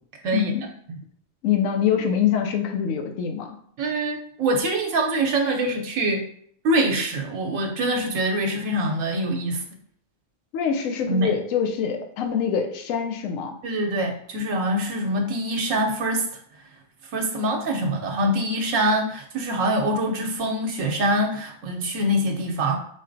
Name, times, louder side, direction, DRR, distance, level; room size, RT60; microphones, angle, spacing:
voice 1, 0.3-0.6 1.4-3.6 10.5-13.5, left 8 dB, 85° left, 4 dB, 1.0 m, -24 dB
voice 2, 3.8-6.3 6.6-9.6 11.1-11.3 13.6-16.3 17.1-22.7, right 1 dB, 80° right, 1 dB, 1.0 m, -24 dB
4.0 x 3.9 x 2.5 m, 0.63 s
omnidirectional pair, 1.3 m